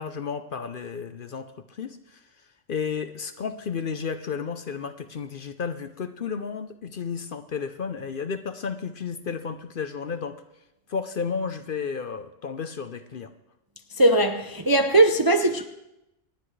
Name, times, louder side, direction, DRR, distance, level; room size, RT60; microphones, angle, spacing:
voice 1, 0.0-2.2 2.7-10.4 10.9-13.3, left 6 dB, 50° left, 0.8 m, -32 dB
voice 2, 14.0-15.7, right 2 dB, 30° right, 0.4 m, -19 dB
26.5 x 10.0 x 3.2 m
omnidirectional pair, 1.3 m